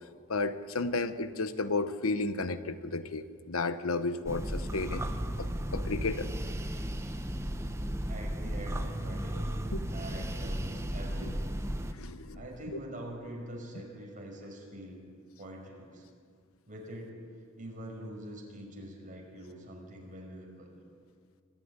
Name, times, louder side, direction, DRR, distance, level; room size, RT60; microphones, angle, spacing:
voice 1, 0.3-5.0 5.4-6.3 9.7-9.8 11.2-11.3 11.9-12.4, left 3 dB, 85° left, 12 dB, 1.0 m, -33 dB
sound 1, 4.3-11.9, equal, 15° right, 1.2 m, -35 dB
voice 2, 8.1-9.5 9.9-11.6 12.3-15.0 15.4-16.1 16.7-17.1 17.6-20.8, right 1 dB, 40° right, -1 dB, 5.6 m, -44 dB
26.0 x 13.5 x 9.7 m, 2.1 s
head